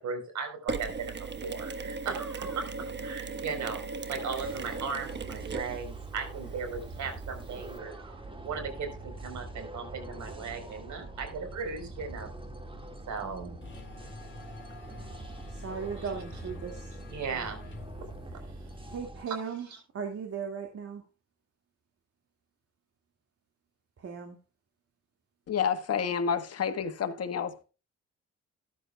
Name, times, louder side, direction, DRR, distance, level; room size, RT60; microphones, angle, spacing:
voice 1, 0.0-12.4 13.1-13.6 16.0-16.1 17.1-17.8 19.3-19.4 19.7-19.8, right 5 dB, 70° right, 4.3 m, -37 dB
Mechanisms, 0.7-7.8, right 4 dB, 35° right, 1.3 m, -38 dB
sound 1, 4.3-19.2, right 1 dB, 15° right, 2.0 m, -44 dB
voice 2, 13.2-13.6 15.5-17.0 17.3-17.5 18.9-19.7 19.9-21.0 24.0-24.4, right 6 dB, 50° right, 2.2 m, -38 dB
sound 2, 13.6-19.0, left 4 dB, 40° left, 2.2 m, -50 dB
voice 3, 25.5-27.6, left 7 dB, 55° left, 1.5 m, -29 dB
14.0 x 10.5 x 2.3 m
cardioid pair, 90°, 30 cm